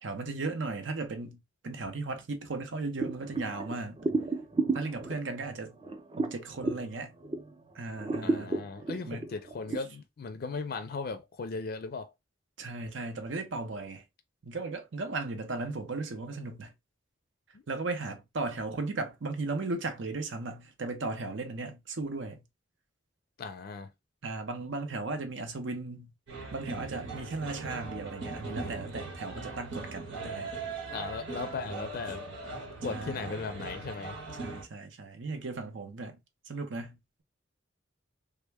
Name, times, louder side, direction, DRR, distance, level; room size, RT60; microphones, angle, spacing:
voice 1, 0.0-4.0 4.7-5.8 6.2-7.1 7.7-8.6 9.0-9.3 12.6-14.0 14.4-16.7 17.7-22.4 24.2-26.1 26.5-30.5 32.9-33.3 34.4-36.2 36.5-37.2, right 3 dB, 75° right, 0.7 m, -36 dB
sound 1, 3.0-7.6 8.0-9.8, right 3 dB, 25° right, 0.5 m, -33 dB
voice 2, 8.2-12.1 17.5-17.6 23.4-23.9 30.9-32.2 32.8-34.2, left 4 dB, 50° left, 0.4 m, -37 dB
sound 2, 26.3-34.6, right 3 dB, 90° right, 1.4 m, -40 dB
3.3 x 2.2 x 3.3 m
head